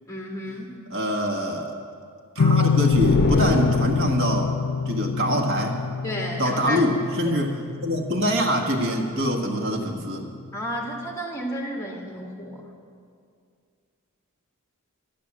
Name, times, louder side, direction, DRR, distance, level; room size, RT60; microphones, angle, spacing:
voice 1, 0.1-0.7 6.0-6.9 7.2-7.4 10.5-12.7, equal, 15° left, -1 dB, 2.1 m, -32 dB
voice 2, 0.9-1.7 2.3-4.5 4.8-5.8 6.4-7.6 7.8-10.2, equal, 60° right, 1 dB, 1.5 m, -24 dB
sound 1, 2.4-9.6, left 5 dB, 90° left, 0.5 m, -26 dB
sound 2, 2.9-4.5, left 2 dB, 50° left, 0.7 m, -25 dB
12.5 x 11.0 x 7.4 m, 2.3 s
head